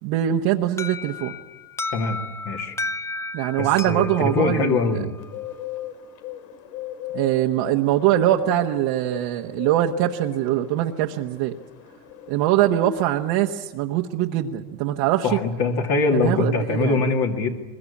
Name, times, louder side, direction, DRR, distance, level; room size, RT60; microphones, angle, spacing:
voice 1, 0.0-1.3 3.3-5.0 7.1-11.5 12.3-15.4 16.1-17.0, right 13 dB, 65° right, 1 dB, 1.4 m, -22 dB
Alarm, 0.8-5.6, left 2 dB, 5° left, 0.7 m, -34 dB
voice 2, 2.4-2.7 3.6-5.1 15.2-17.5, left 3 dB, 50° left, 1 dB, 2.8 m, -23 dB
Bird, 5.2-13.5, left 12 dB, 85° left, 2.7 m, -38 dB
22.5 x 21.5 x 8.5 m, 1.2 s
supercardioid pair, 120°, 49 cm